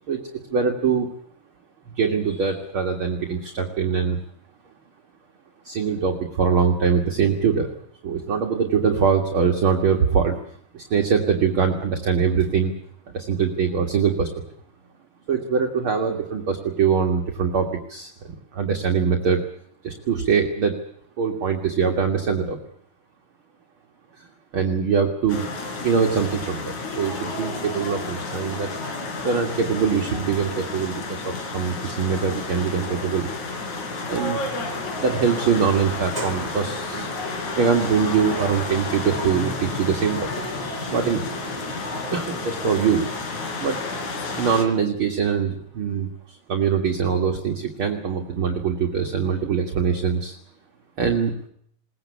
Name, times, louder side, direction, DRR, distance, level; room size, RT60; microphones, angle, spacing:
voice 1, 0.5-1.1 1.9-4.2 5.6-7.7 8.0-10.4 10.7-12.7 13.1-14.3 15.3-18.1 18.5-19.4 19.8-20.8 21.2-22.6 24.2-24.3 24.5-25.5 25.8-28.7 29.2-33.3 34.1-34.4 35.0-37.1 37.6-40.3 40.9-41.2 42.1-43.0 43.6-43.8 44.4-50.3 51.0-51.3, right 6 dB, 50° right, 3 dB, 2.5 m, -23 dB
sound 1, 25.3-44.6, left 3 dB, 85° left, 4.9 m, -31 dB
Sliding door, 35.8-41.7, equal, 15° right, 3.2 m, -38 dB
21.5 x 19.0 x 8.4 m, 0.68 s
omnidirectional pair, 3.3 m